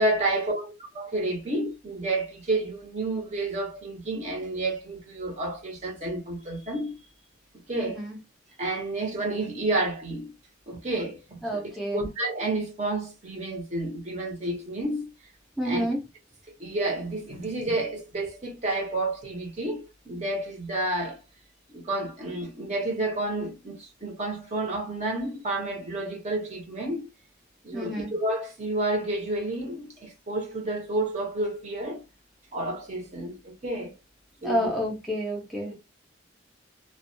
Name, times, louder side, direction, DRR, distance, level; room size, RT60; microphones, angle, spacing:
voice 1, 0.0-6.9 7.7-8.0 8.6-10.3 10.7-15.1 15.6-15.8 16.6-21.2 21.7-27.1 27.6-32.0 32.5-33.9 34.4-34.7, right 2 dB, 35° right, 0.7 m, -30 dB
voice 2, 7.8-8.2 11.4-12.1 15.6-16.0 27.7-28.1 34.4-35.7, equal, ahead, 0.5 m, -29 dB
2.3 x 2.1 x 2.6 m
head